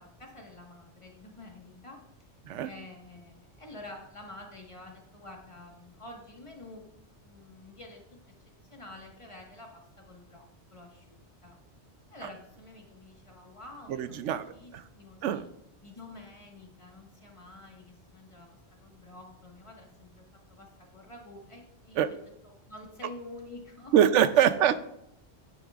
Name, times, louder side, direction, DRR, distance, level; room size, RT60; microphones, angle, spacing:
voice 1, 0.0-2.0 2.6-6.8 7.2-8.0 8.7-11.6 12.1-15.5 15.8-23.9 24.3-24.5, left 2 dB, 25° left, 1 dB, 1.5 m, -49 dB
voice 2, 14.0-14.4 14.7-14.8 15.2-15.4 22.0-22.1 23.9-24.8, right 10 dB, 85° right, 13 dB, 0.9 m, -23 dB
10.0 x 9.7 x 2.4 m, 0.79 s
omnidirectional pair, 1.2 m